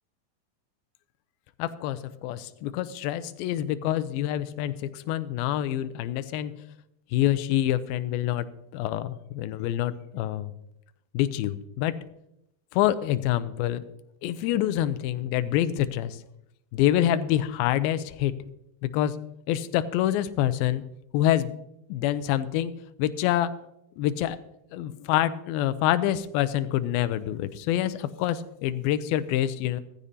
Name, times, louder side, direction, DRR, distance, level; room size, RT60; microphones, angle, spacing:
voice 1, 1.6-6.6 7.1-8.5 8.7-10.5 11.1-12.0 12.7-13.9 14.2-16.2 16.7-18.3 18.8-19.2 19.5-20.9 21.1-21.5 21.9-22.7 23.0-23.6 24.0-24.4 24.7-29.8, left 12 dB, 85° left, 12 dB, 2.2 m, -26 dB
16.5 x 15.0 x 2.8 m, 0.81 s
omnidirectional pair, 4.8 m